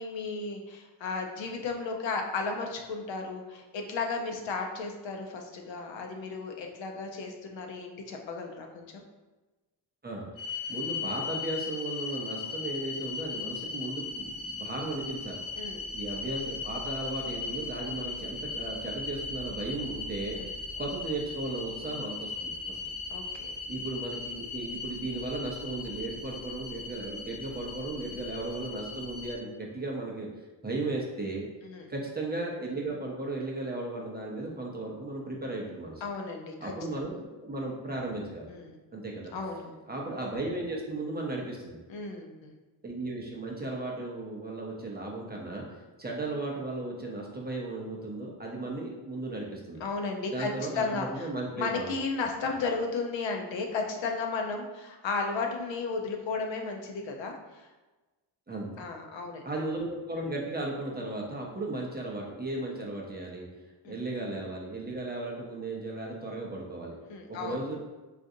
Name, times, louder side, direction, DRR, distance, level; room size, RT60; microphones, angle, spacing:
voice 1, 0.0-9.0 15.6-15.8 20.4-20.5 23.1-23.5 31.6-31.9 36.0-37.0 38.5-38.8 39.3-39.7 41.9-42.5 49.8-51.3 51.6-57.7 58.8-59.4 63.8-64.0 67.1-67.6, left 4 dB, 80° left, 3 dB, 0.6 m, -34 dB
sound 1, 10.4-29.4, left 4 dB, 60° left, 1.0 m, -38 dB
voice 2, 10.7-15.4 15.9-20.4 20.8-22.8 23.7-30.3 30.6-31.5 31.9-36.0 36.6-38.5 38.9-39.3 39.9-41.8 42.8-45.6 46.0-49.8 50.3-51.9 58.5-58.8 59.4-63.5 63.8-67.0 67.3-67.8, right 2 dB, 20° right, -2 dB, 0.5 m, -35 dB
3.7 x 2.4 x 2.6 m, 1.2 s
wide cardioid pair, 115°, 45 cm